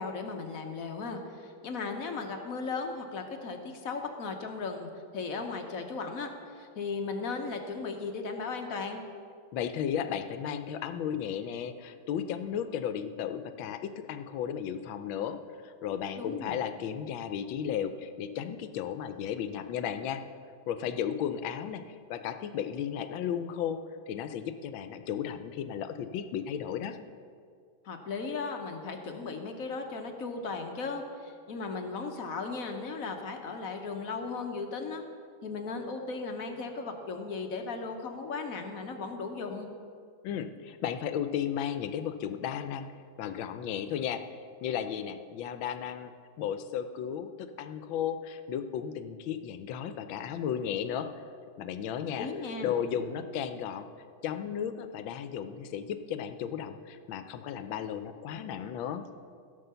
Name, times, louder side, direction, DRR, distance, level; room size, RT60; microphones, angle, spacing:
voice 1, 0.0-9.0 16.2-16.6 27.8-35.0 35.4-39.7 52.2-52.7, left 4 dB, 55° left, 4 dB, 1.2 m, -36 dB
voice 2, 9.5-20.2 20.7-23.8 24.1-27.0 40.2-42.9 43.2-44.2 44.6-46.1 46.4-51.1 51.6-52.3 52.6-53.9 54.2-59.0, left 8 dB, 80° left, 10 dB, 1.4 m, -34 dB
16.0 x 5.6 x 6.8 m, 2.2 s
omnidirectional pair, 2.1 m